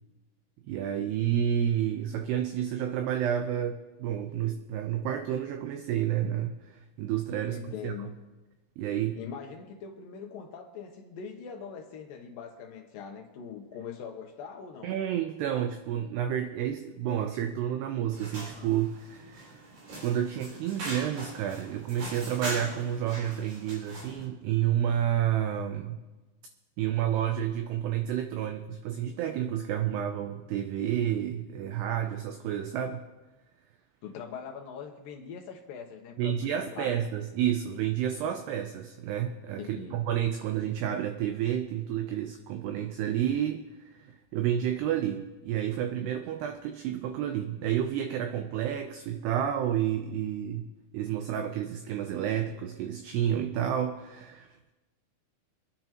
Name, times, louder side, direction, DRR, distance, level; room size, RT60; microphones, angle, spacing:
voice 1, 0.7-7.9 8.8-9.2 14.8-19.6 20.0-26.0 26.8-33.0 36.2-50.7 50.9-54.7, right 10 dB, 85° right, 6 dB, 2.3 m, -30 dB
voice 2, 7.4-8.1 9.2-15.0 34.0-36.9 39.6-40.0, left 6 dB, 90° left, 2 dB, 1.9 m, -42 dB
sound 1, 18.1-24.2, right 1 dB, 50° right, 5.1 m, -41 dB
26.0 x 9.9 x 3.0 m, 1.2 s
omnidirectional pair, 5.5 m